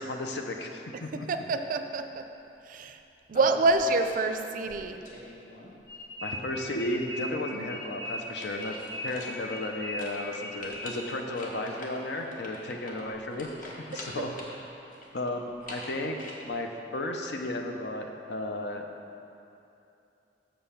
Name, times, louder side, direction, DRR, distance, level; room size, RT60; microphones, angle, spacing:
voice 1, 0.0-1.5 6.2-8.8 9.0-14.3 15.1-18.9, left 1 dB, 70° left, 3 dB, 0.7 m, -34 dB
voice 2, 1.1-2.3 2.7-3.0 3.3-5.0 7.5-7.7 13.9-14.2, right 3 dB, 50° right, 8 dB, 0.4 m, -27 dB
sound 1, 3.3-4.2 4.6-5.9 8.1-9.7 10.0-10.2 10.6-14.6 14.9-16.3, left 1 dB, 50° left, 1.2 m, -44 dB
sound 2, 5.9-11.2, left 1 dB, 20° left, 0.8 m, -39 dB
7.1 x 5.4 x 5.7 m, 2.8 s
head